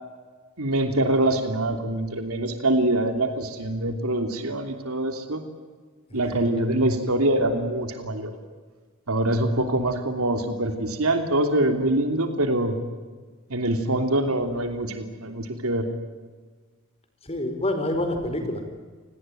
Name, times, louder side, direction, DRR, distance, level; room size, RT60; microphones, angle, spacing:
voice 1, 0.6-5.4 6.1-8.3 9.1-12.8 13.5-15.9, right 1 dB, 75° right, 6 dB, 3.1 m, -24 dB
voice 2, 6.1-6.4 17.2-18.6, left 1 dB, 25° left, 7 dB, 4.6 m, -28 dB
29.5 x 19.0 x 9.2 m, 1.4 s
head